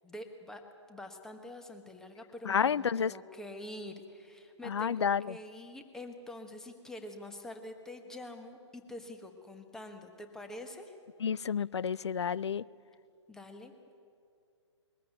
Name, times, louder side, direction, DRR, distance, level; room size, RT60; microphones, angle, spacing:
voice 1, 0.0-0.6 0.9-11.0 13.3-13.7, left 1 dB, 5° left, 1.2 m, -46 dB
voice 2, 2.4-3.1 4.6-5.4 11.2-12.6, left 7 dB, 65° left, 0.5 m, -30 dB
21.5 x 14.5 x 9.1 m
figure-of-eight pair, 130°, 16 cm